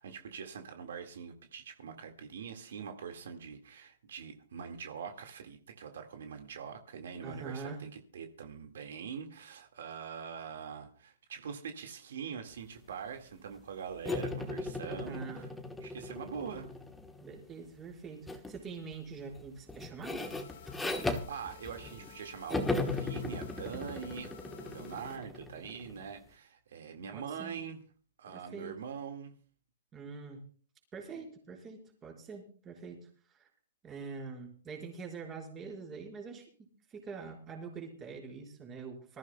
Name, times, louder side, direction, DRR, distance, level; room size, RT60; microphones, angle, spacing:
voice 1, 0.0-15.2 15.8-16.7 20.9-27.8 28.2-29.3, right 7 dB, 70° right, 4 dB, 1.9 m, -43 dB
voice 2, 7.2-7.8 14.8-15.5 17.2-20.2 27.1-27.6 28.3-28.7 29.9-30.4 30.9-33.5 33.8-36.5 36.9-39.2, right 5 dB, 15° right, 0 dB, 4.8 m, -45 dB
sound 1, 14.1-17.4 18.3-18.6 18.9-22.2 22.5-26.0, left 2 dB, 5° left, 1.3 m, -37 dB
sound 2, 20.2-25.2, left 7 dB, 65° left, 2.9 m, -54 dB
25.5 x 14.5 x 2.3 m, 0.42 s
hypercardioid pair, 160°, 0 cm